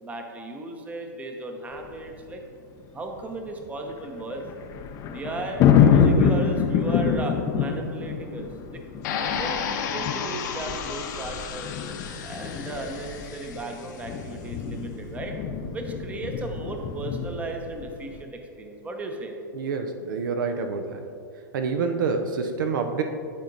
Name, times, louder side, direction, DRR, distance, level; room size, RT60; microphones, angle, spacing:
voice 1, 0.0-2.4 2.9-4.5 5.1-8.8 9.4-11.7 12.2-15.3 15.7-19.4, right 2 dB, 15° right, 3 dB, 0.8 m, -35 dB
sound 1, 1.8-2.1 3.1-3.2 3.7-18.2, left 7 dB, 30° left, 0.6 m, -26 dB
sound 2, 9.0-14.0, left 6 dB, 60° left, 0.9 m, -33 dB
voice 2, 19.5-21.0 21.5-23.0, right 5 dB, 70° right, 6 dB, 0.7 m, -27 dB
10.5 x 4.3 x 3.9 m, 2.3 s
hypercardioid pair, 130°, 11 cm